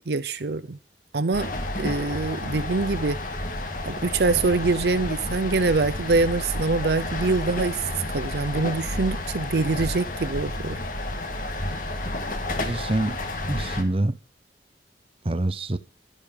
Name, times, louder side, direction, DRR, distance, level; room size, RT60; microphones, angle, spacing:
voice 1, 0.1-0.8 1.1-1.5 1.8-3.2 3.9-10.8, right 3 dB, 65° right, 0.6 m, -24 dB
sound 1, 1.3-13.8, left 1 dB, 50° left, 2.0 m, -31 dB
voice 2, 12.5-13.2 13.5-14.2 15.2-15.8, right 1 dB, 30° right, 0.8 m, -26 dB
12.5 x 10.5 x 6.9 m
head